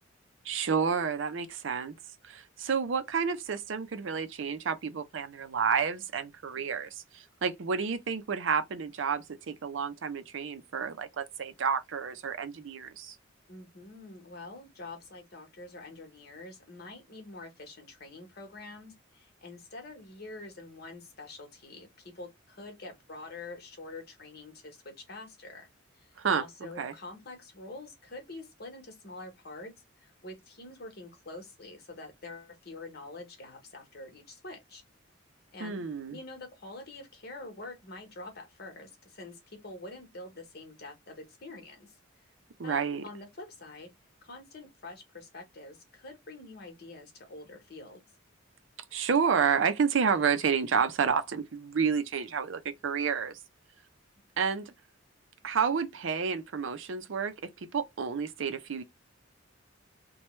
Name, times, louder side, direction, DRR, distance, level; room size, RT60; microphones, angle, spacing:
voice 1, 0.5-1.9 2.3-6.9 7.1-13.2 26.2-26.9 35.6-36.2 42.6-43.0 48.9-53.4 54.4-54.7 55.4-57.3 57.7-58.8, right 6 dB, 65° right, 0.5 m, -30 dB
voice 2, 13.5-25.7 25.9-29.7 30.0-34.8 35.5-42.0 42.6-43.9 44.2-48.0, left 2 dB, 50° left, 1.1 m, -46 dB
3.0 x 2.2 x 3.1 m
head